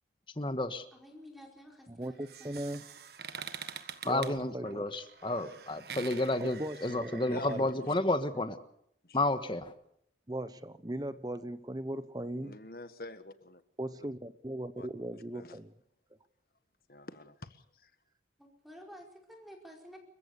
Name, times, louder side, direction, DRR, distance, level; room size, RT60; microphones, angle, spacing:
voice 1, 0.4-0.8 4.0-8.6 9.1-9.7, left 2 dB, 25° left, 1.5 m, -31 dB
voice 2, 0.9-2.8 18.4-20.0, equal, ahead, 4.9 m, -52 dB
voice 3, 1.9-2.8 4.0-4.8 6.4-7.7 10.3-12.6 13.8-15.7, right 1 dB, 20° right, 0.9 m, -38 dB
sound 1, 2.0-7.6, right 7 dB, 60° right, 1.5 m, -46 dB
voice 4, 7.3-7.9 9.0-9.2 12.4-13.6 14.8-14.9 15.3-15.6 16.9-17.9, left 2 dB, 55° left, 1.6 m, -46 dB
29.5 x 15.0 x 7.0 m
head